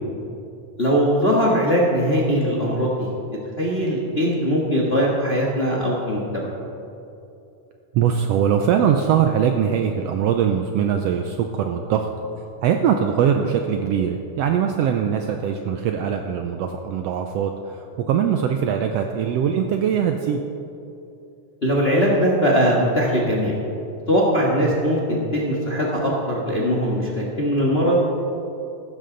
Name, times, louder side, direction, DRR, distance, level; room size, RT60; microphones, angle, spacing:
voice 1, 0.8-3.1 3.6-6.4 21.6-23.5 24.1-28.0, equal, 35° left, -3 dB, 1.0 m, -20 dB
voice 2, 7.9-12.1 12.6-20.4 24.6-24.7, right 8 dB, 80° right, 5 dB, 1.5 m, -21 dB
15.5 x 12.5 x 3.9 m, 2.7 s
omnidirectional pair, 3.4 m